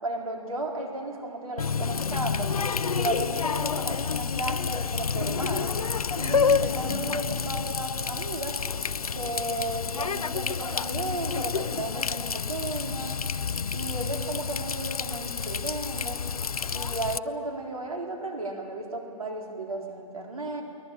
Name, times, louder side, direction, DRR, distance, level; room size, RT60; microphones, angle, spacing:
voice 1, 0.0-2.5 2.8-5.7 6.2-8.6 9.1-13.2 13.7-16.2 16.7-20.6, right 2 dB, 80° right, 2 dB, 4.2 m, -34 dB
Water tap faucet, 1.6-17.2, left 6 dB, 90° left, 0.5 m, -29 dB
23.0 x 19.5 x 9.0 m, 2.6 s
figure-of-eight pair, 120°, 18 cm